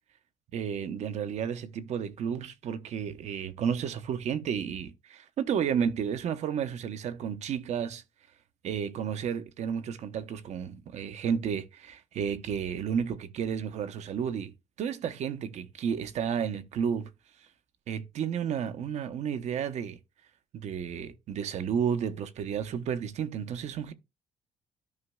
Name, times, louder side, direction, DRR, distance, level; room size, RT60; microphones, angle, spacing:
voice 1, 0.5-8.0 8.6-14.5 14.8-17.1 17.9-20.0 20.5-23.9, right 7 dB, 65° right, 0.8 m, -32 dB
13.0 x 5.1 x 2.3 m
cardioid pair, 105°, 13 cm